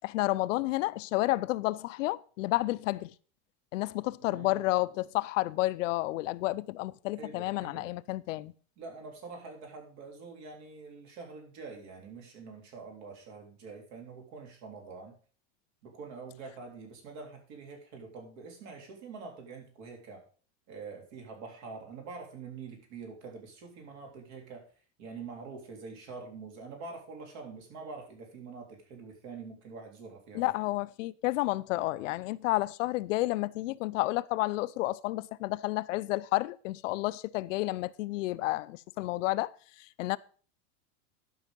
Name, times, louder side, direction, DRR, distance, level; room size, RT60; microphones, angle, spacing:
voice 1, 0.0-3.1 3.7-8.5 30.3-39.5 40.0-40.2, left 18 dB, 80° left, 0.6 m, -31 dB
voice 2, 4.3-4.6 7.2-7.9 8.8-15.1 15.8-20.2 20.7-24.7 25.0-30.5, right 4 dB, 60° right, 3.5 m, -45 dB
12.0 x 5.6 x 5.2 m
supercardioid pair, 150°, 37 cm